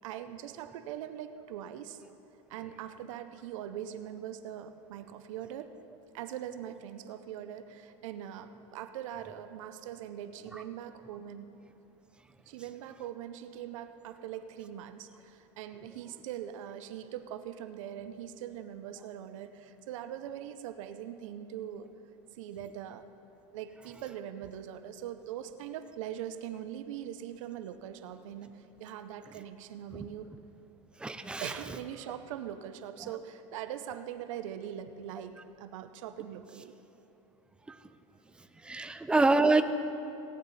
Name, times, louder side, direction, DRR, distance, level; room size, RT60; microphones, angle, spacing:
voice 1, 0.0-2.0 2.5-5.7 6.1-11.6 12.5-21.9 22.3-23.1 23.5-30.3 31.4-36.8, right 10 dB, 85° right, 10 dB, 0.6 m, -42 dB
voice 2, 31.0-31.5 33.0-33.1 37.7-37.8 38.4-39.6, right 3 dB, 5° right, 9 dB, 0.4 m, -27 dB
17.5 x 10.0 x 4.1 m, 2.9 s
supercardioid pair, 150°, 16 cm